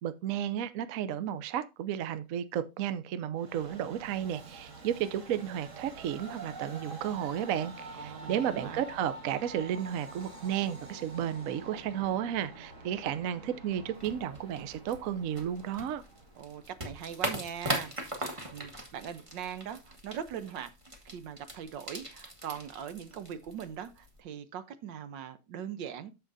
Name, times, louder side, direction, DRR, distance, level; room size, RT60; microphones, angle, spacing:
voice 1, 0.0-16.0, right 10 dB, 65° right, 0.9 m, -33 dB
Train, 3.4-16.8, right 2 dB, 45° right, 1.9 m, -47 dB
voice 2, 7.9-8.8 16.4-20.7 21.0-26.1, right 8 dB, 85° right, 1.5 m, -41 dB
sound 1, 14.0-24.2, right 1 dB, 20° right, 1.2 m, -40 dB
13.5 x 5.0 x 2.6 m
omnidirectional pair, 2.0 m